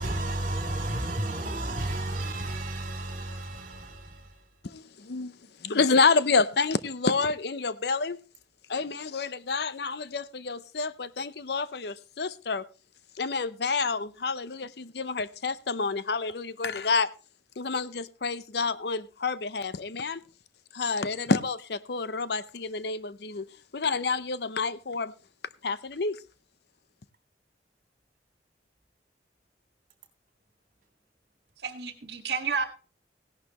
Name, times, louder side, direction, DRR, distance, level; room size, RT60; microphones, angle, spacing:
voice 1, 0.0-4.5, right 1 dB, 45° right, 3.1 m, -32 dB
voice 2, 4.6-8.2 8.7-12.6 13.2-17.1 17.6-20.2 20.7-23.5 23.7-25.1 25.6-26.2, left 4 dB, 65° left, 0.7 m, -28 dB
voice 3, 31.6-32.6, right 5 dB, 70° right, 1.8 m, -31 dB
16.5 x 11.0 x 3.0 m
head